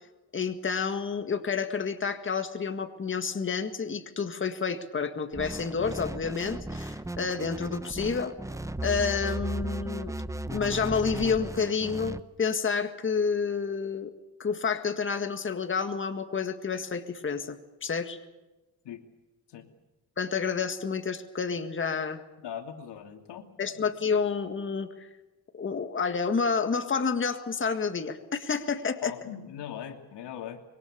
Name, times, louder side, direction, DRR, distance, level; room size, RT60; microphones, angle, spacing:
voice 1, 0.3-8.3 8.8-10.1 10.5-14.1 14.4-18.2 20.2-22.2 23.6-25.1 25.5-29.1, left 5 dB, 30° left, 7 dB, 1.9 m, -29 dB
sound 1, 5.3-12.2, right 1 dB, 10° right, 0.8 m, -36 dB
voice 2, 22.4-23.9 29.0-30.6, left 9 dB, 85° left, 6 dB, 3.0 m, -40 dB
25.5 x 23.0 x 6.7 m, 1.1 s
cardioid pair, 125°, 40 cm